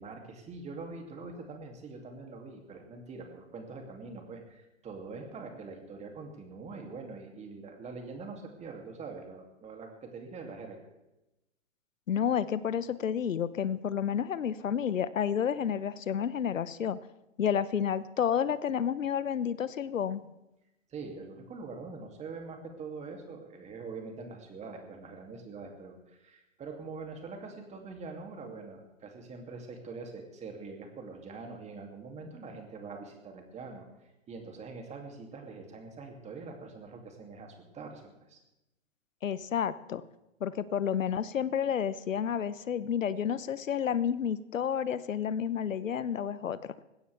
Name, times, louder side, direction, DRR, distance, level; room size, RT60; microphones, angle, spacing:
voice 1, 0.0-10.8 20.9-33.8 34.3-38.0 38.3-38.4, right 4 dB, 15° right, 3 dB, 2.8 m, -44 dB
voice 2, 12.1-17.0 17.4-20.2 39.2-40.0 40.4-46.6, left 8 dB, 80° left, 16 dB, 0.9 m, -30 dB
20.0 x 16.5 x 3.5 m, 0.95 s
hypercardioid pair, 130°, 39 cm